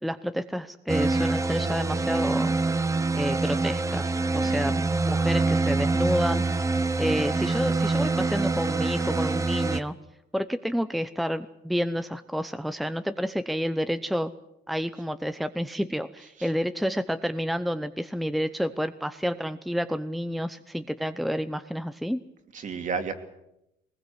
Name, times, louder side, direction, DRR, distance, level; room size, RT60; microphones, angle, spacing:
voice 1, 0.0-2.5 3.1-6.7 7.0-9.9 10.3-14.3 14.7-22.2, equal, ahead, 10 dB, 0.8 m, -29 dB
sound 1, 0.9-9.8, right 3 dB, 20° right, 1.1 m, -25 dB
voice 2, 4.4-4.8 16.4-16.5 22.5-23.1, right 5 dB, 50° right, 6 dB, 2.9 m, -33 dB
21.5 x 20.0 x 8.1 m, 0.86 s
cardioid pair, 110°, 17 cm